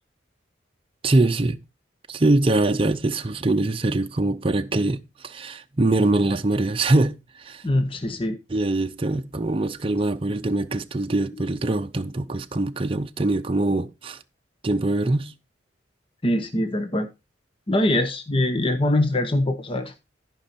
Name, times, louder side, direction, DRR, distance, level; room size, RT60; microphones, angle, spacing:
voice 1, 1.0-1.6 2.1-7.6 8.5-14.2 14.6-15.3, right 2 dB, 30° right, 0.7 m, -23 dB
voice 2, 7.6-8.4 16.2-17.1 17.7-19.9, left 1 dB, 30° left, 0.9 m, -23 dB
13.5 x 5.5 x 4.2 m
head